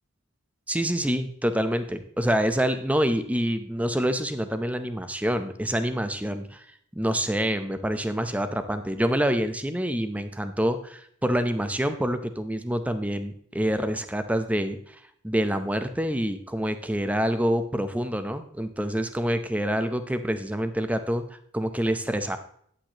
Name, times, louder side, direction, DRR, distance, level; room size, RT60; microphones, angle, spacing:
voice 1, 0.7-6.6 7.0-22.4, equal, 5° right, 9 dB, 0.7 m, -27 dB
9.8 x 8.9 x 3.0 m, 0.64 s
head